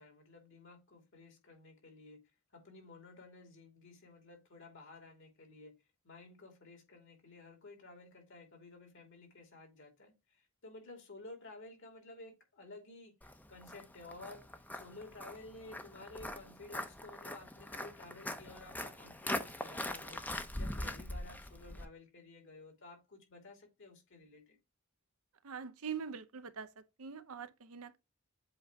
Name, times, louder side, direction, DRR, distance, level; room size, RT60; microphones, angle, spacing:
voice 1, 0.0-2.2 2.5-5.7 6.0-24.6, left 2 dB, 60° left, 2.5 m, -53 dB
Walk footsteps, 13.2-21.9, left 1 dB, 10° left, 0.6 m, -42 dB
voice 2, 25.4-28.0, right 6 dB, 80° right, 0.7 m, -43 dB
7.8 x 2.7 x 4.6 m
head